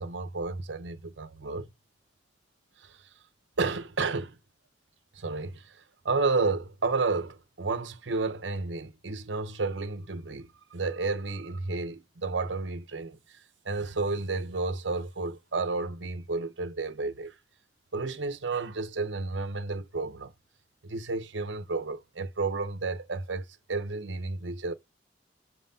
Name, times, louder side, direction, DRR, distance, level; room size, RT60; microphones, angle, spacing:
voice 1, 0.0-1.7 2.8-3.1 3.6-4.4 5.1-17.3 17.9-20.3 20.8-24.7, right 3 dB, 80° right, 0.9 m, -32 dB
4.4 x 3.9 x 5.6 m
head